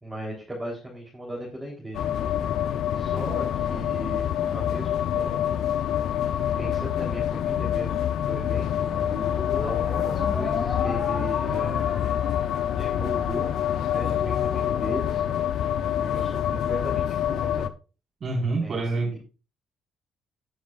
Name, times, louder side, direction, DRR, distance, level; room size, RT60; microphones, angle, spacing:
voice 1, 0.0-2.1 2.9-5.6 6.6-8.0 8.3-8.9 9.6-11.9 12.7-13.5 13.9-15.2 16.0-17.7 18.6-19.2, right 1 dB, 10° right, -3 dB, 3.7 m, -37 dB
sound 1, 1.9-17.7, left 10 dB, 80° left, 0.7 m, -26 dB
sound 2, 8.9-15.4, left 3 dB, 25° left, 2.8 m, -36 dB
voice 2, 18.2-19.2, right 3 dB, 50° right, 1 dB, 5.0 m, -26 dB
18.0 x 6.4 x 2.5 m, 0.33 s
cardioid pair, 90°, 0 cm